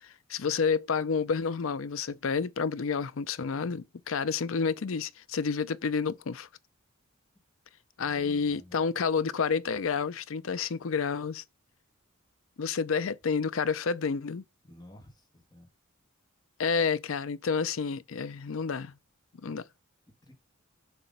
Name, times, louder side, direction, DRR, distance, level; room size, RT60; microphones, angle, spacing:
voice 1, 0.0-6.5 8.0-11.4 12.6-14.4 16.6-18.9 19.4-19.6, left 5 dB, 70° left, 0.5 m, -29 dB
voice 2, 8.0-8.8 14.6-15.7 20.2-20.3, left 1 dB, 20° left, 1.7 m, -53 dB
7.1 x 3.4 x 5.3 m
head